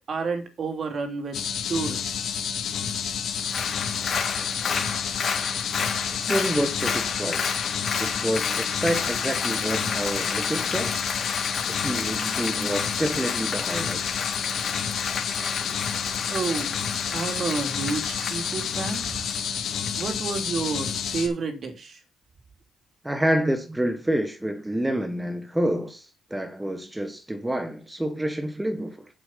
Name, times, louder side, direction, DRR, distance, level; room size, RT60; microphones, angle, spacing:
voice 1, 0.1-1.4 1.7-2.1 16.3-16.7 17.1-19.0 20.0-22.0, right 4 dB, 50° right, 3.1 m, -30 dB
sound 1, 1.3-21.3, left 7 dB, 70° left, 2.4 m, -30 dB
Applause, 3.4-20.0 20.4-20.5, left 5 dB, 50° left, 4.0 m, -32 dB
voice 2, 6.1-7.5 8.0-11.0 11.6-14.2 23.0-29.1, right 1 dB, 10° right, 1.6 m, -28 dB
8.0 x 8.0 x 5.8 m
cardioid pair, 90°, 0 cm